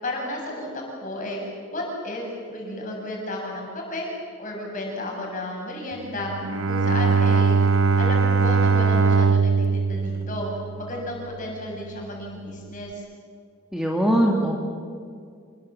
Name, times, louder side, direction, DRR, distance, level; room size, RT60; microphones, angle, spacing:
voice 1, 0.0-1.4 1.7-4.1 4.4-6.3 6.6-7.6 8.0-10.5 10.8-13.0, left 1 dB, 40° left, -1 dB, 6.7 m, -33 dB
Bowed string instrument, 6.2-11.4, right 5 dB, 75° right, 0.9 m, -21 dB
voice 2, 13.7-14.6, right 1 dB, ahead, -1 dB, 1.9 m, -21 dB
26.5 x 22.0 x 7.4 m, 2.2 s
head